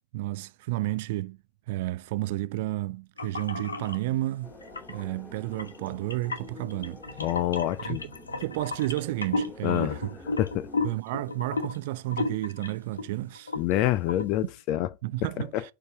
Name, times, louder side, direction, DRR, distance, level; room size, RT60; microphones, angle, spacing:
voice 1, 0.1-1.4 1.7-4.5 4.9-7.0 7.8-8.0 8.4-10.2 10.8-13.5 15.0-15.7, right 17 dB, 50° right, 0.4 m, -31 dB
sound 1, 3.2-4.0 4.6-5.0 5.5-13.1 13.4-13.7 14.1-14.3, left 3 dB, 75° left, 1.1 m, -33 dB
sound 2, 4.4-11.0, left 2 dB, 15° left, 2.4 m, -48 dB
voice 2, 7.2-8.0 9.6-10.0 10.4-10.7 13.6-14.9 15.4-15.7, left 14 dB, 40° left, 0.5 m, -27 dB
6.7 x 4.8 x 6.4 m
figure-of-eight pair, 90°, 0 cm